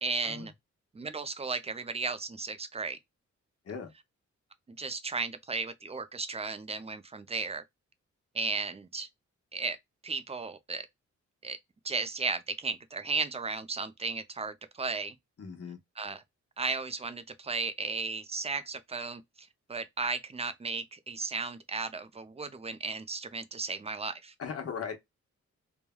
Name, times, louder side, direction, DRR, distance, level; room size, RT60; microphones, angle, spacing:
voice 1, 0.0-0.5 0.9-3.0 4.7-7.6 8.3-9.1 9.5-9.8 10.0-10.9 11.4-11.6 11.8-15.2 16.0-16.2 16.6-24.3, right 4 dB, 20° right, 0.4 m, -35 dB
voice 2, 15.4-15.8 24.4-24.9, left 6 dB, 55° left, 1.1 m, -38 dB
3.2 x 2.1 x 2.2 m
cardioid pair, 90°, 29 cm